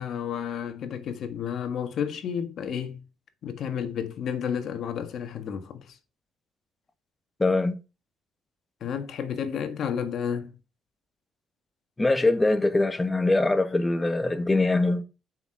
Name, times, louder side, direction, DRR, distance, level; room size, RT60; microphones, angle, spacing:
voice 1, 0.0-3.0 3.4-6.0 8.8-10.5, left 8 dB, 60° left, 1.6 m, -31 dB
voice 2, 7.4-7.8 12.0-15.0, left 2 dB, 15° left, 1.2 m, -23 dB
7.2 x 5.9 x 6.2 m
cardioid pair, 100°, 0 cm